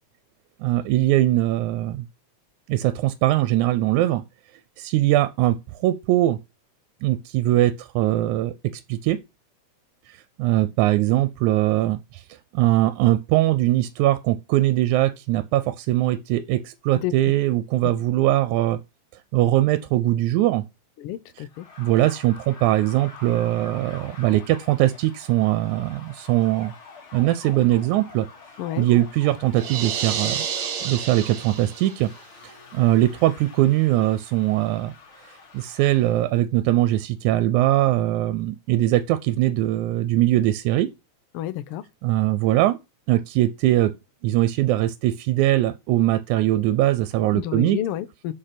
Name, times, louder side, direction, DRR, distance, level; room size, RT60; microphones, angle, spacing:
voice 1, 0.6-2.1 2.7-4.2 4.8-5.5 5.8-6.4 7.0-9.2 10.4-12.2 12.5-18.8 19.3-20.6 21.8-26.7 27.1-28.3 28.8-30.5 30.8-32.1 32.4-34.9 35.5-40.9 42.0-42.8 43.1-43.9 44.2-47.8, right 15 dB, 85° right, 2.0 m, -21 dB
voice 2, 21.0-21.7 28.6-28.9 41.3-41.8 47.3-48.3, left 12 dB, 80° left, 1.3 m, -30 dB
sound 1, 21.5-36.3, left 4 dB, 50° left, 2.4 m, -46 dB
sound 2, 29.6-32.1, right 8 dB, 65° right, 2.2 m, -29 dB
6.6 x 5.2 x 5.8 m
omnidirectional pair, 3.4 m